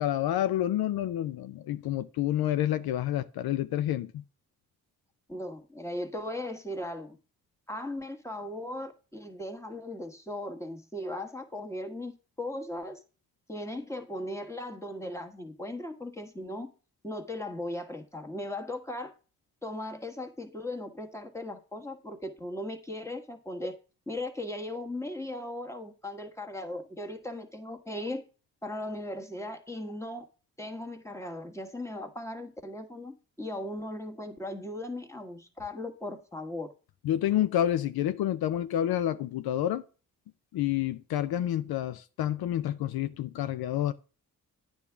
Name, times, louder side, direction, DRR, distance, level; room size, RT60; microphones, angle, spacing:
voice 1, 0.0-4.2 37.0-39.8 40.5-43.9, left 12 dB, 80° left, 0.5 m, -29 dB
voice 2, 5.3-7.2 7.7-13.0 13.5-16.7 17.0-19.1 19.6-23.8 24.1-28.2 28.6-30.3 30.6-36.7, left 1 dB, 10° left, 1.5 m, -38 dB
9.0 x 3.6 x 6.9 m
cardioid pair, 60°, 37 cm